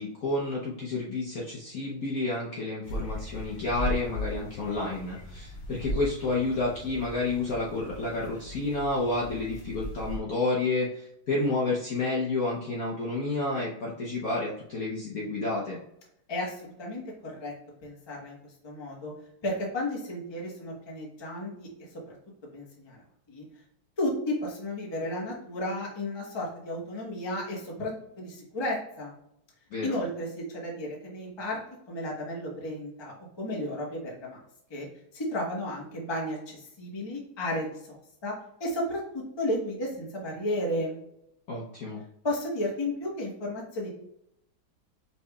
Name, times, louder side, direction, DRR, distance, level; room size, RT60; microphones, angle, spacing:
voice 1, 0.0-15.8 29.7-30.0 41.5-42.0, left 2 dB, 60° left, -4 dB, 1.0 m, -30 dB
sound 1, 2.8-10.2, left 1 dB, 75° left, 1.8 m, -37 dB
voice 2, 16.3-17.5 17.8-18.4 18.6-19.1 19.4-21.7 22.5-23.0 23.3-23.4 24.0-29.1 29.8-31.6 31.9-34.4 34.7-34.9 35.1-38.3 38.6-39.0 39.4-41.0 42.2-43.9, left 1 dB, 20° left, -3 dB, 0.7 m, -33 dB
5.5 x 3.4 x 2.3 m, 0.76 s
omnidirectional pair, 2.3 m